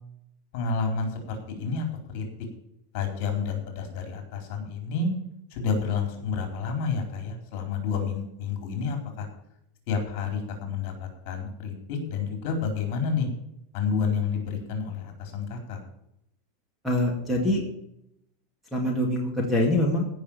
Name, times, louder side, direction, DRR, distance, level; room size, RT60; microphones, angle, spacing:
voice 1, 0.5-1.9 2.1-2.2 2.9-5.1 5.5-9.3 9.9-13.3 13.7-15.8, left 5 dB, 45° left, 4 dB, 4.1 m, -29 dB
voice 2, 16.8-17.6 18.7-20.0, left 1 dB, ahead, 0 dB, 2.3 m, -24 dB
16.0 x 6.3 x 7.2 m, 0.78 s
supercardioid pair, 170°, 0 cm